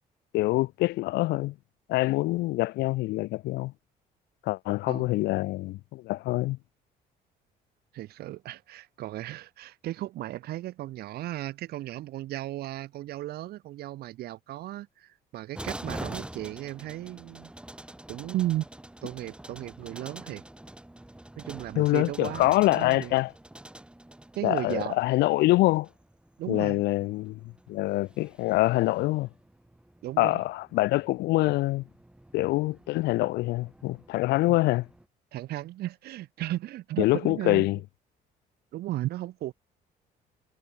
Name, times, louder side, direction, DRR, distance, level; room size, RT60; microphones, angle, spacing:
voice 1, 0.3-1.5 1.9-3.7 4.4-6.6 21.8-23.3 24.4-25.9 26.5-29.3 30.2-31.8 32.3-34.9 37.0-37.8, left 19 dB, 80° left, 0.8 m, -25 dB
voice 2, 7.9-17.5 18.1-18.7 19.0-20.4 21.4-23.1 24.4-25.0 26.4-26.8 30.0-30.4 34.5-34.6 35.3-37.7 38.7-39.5, right 15 dB, 70° right, 0.9 m, -35 dB
sound 1, 15.5-35.0, right 1 dB, 5° right, 6.4 m, -46 dB
cardioid pair, 110°, 17 cm